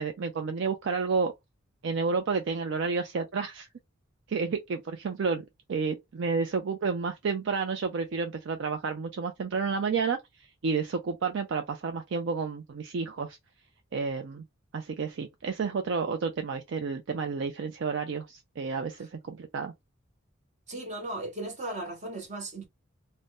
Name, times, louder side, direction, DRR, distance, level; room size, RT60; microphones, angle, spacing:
voice 1, 0.0-1.3 1.8-3.7 4.3-10.2 10.6-13.4 13.9-14.4 14.7-19.7, right 5 dB, 60° right, 0.4 m, -30 dB
voice 2, 20.7-22.7, right 2 dB, 35° right, 1.0 m, -36 dB
2.6 x 2.1 x 3.4 m
head